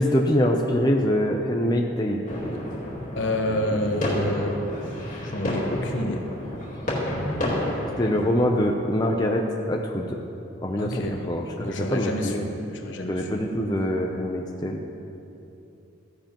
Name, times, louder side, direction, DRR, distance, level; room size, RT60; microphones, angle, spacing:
voice 1, 0.0-2.2 8.0-10.2 10.6-12.5 13.1-14.8, equal, 20° left, 1 dB, 0.5 m, -24 dB
sound 1, 2.3-8.3, left 1 dB, 40° left, 2.2 m, -30 dB
voice 2, 3.2-4.6 5.2-6.2 10.8-11.2 11.6-12.4 12.7-13.2, left 1 dB, 65° left, 3 dB, 1.1 m, -28 dB
15.0 x 10.5 x 3.0 m, 2.8 s
head